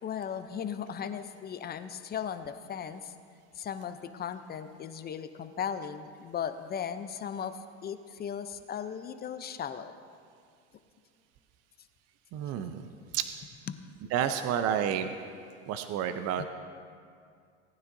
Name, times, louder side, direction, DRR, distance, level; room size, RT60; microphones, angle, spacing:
voice 1, 0.0-3.1 3.5-10.0 13.7-13.8 16.4-16.5, left 8 dB, 25° left, 10 dB, 0.6 m, -37 dB
voice 2, 12.3-12.9 13.1-13.3 14.1-15.1 15.7-16.5, right 9 dB, 45° right, 9 dB, 0.6 m, -30 dB
18.5 x 9.6 x 2.7 m, 2.3 s
hypercardioid pair, 95°, 36 cm